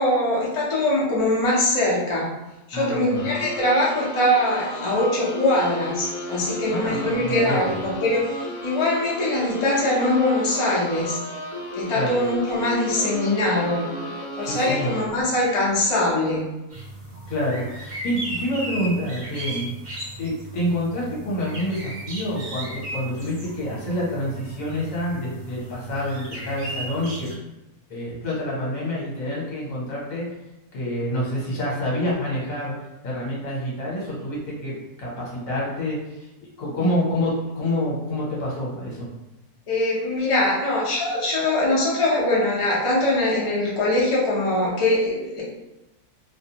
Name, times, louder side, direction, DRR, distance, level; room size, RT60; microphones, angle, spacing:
voice 1, 0.0-2.3 2.7-11.2 11.7-13.8 14.4-16.5 39.7-45.4, left 1 dB, 35° left, -6 dB, 0.4 m, -22 dB
voice 2, 2.7-3.3 6.7-7.6 11.9-12.1 14.4-14.9 17.3-19.7 20.2-27.3 27.9-30.2 30.7-32.7 33.0-34.7 35.0-36.2 36.6-39.1, equal, 65° left, -5 dB, 1.2 m, -27 dB
sound 1, 3.1-15.0, left 1 dB, 85° left, 1.1 m, -34 dB
sound 2, 16.7-27.3, right 1 dB, 45° right, 1.0 m, -36 dB
2.6 x 2.1 x 2.8 m, 0.96 s
omnidirectional pair, 1.6 m